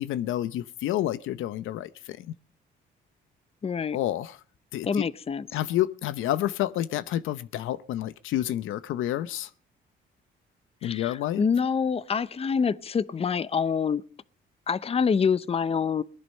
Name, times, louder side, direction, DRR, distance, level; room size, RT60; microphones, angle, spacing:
voice 1, 0.0-2.3 3.9-4.4 4.7-5.0 5.5-9.5 10.8-11.4, left 13 dB, 85° left, 0.7 m, -29 dB
voice 2, 3.6-4.0 4.9-5.4 10.8-14.0 14.7-16.0, left 6 dB, 30° left, 0.6 m, -26 dB
19.5 x 11.0 x 5.4 m
cardioid pair, 90°, 20 cm